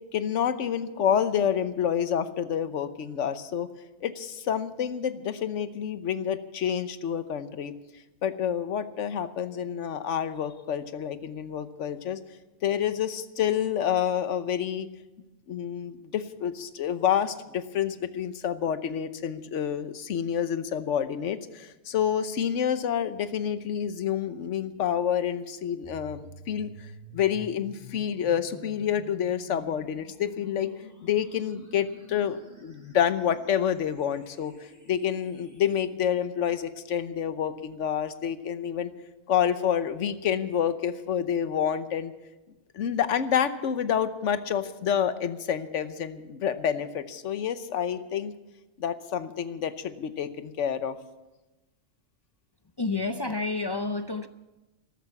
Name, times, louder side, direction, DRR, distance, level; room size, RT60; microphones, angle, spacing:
voice 1, 0.1-3.7 4.0-7.7 8.2-12.2 12.6-14.9 15.5-26.9 27.1-30.7 31.0-34.5 34.9-38.9 39.3-42.1 42.7-48.3 48.8-51.0, left 9 dB, 75° left, 1.2 m, -28 dB
sound 1, 25.8-35.8, equal, 15° right, 6.8 m, -50 dB
voice 2, 52.8-54.3, left 3 dB, 40° left, 0.3 m, -29 dB
13.5 x 13.5 x 7.2 m
omnidirectional pair, 1.3 m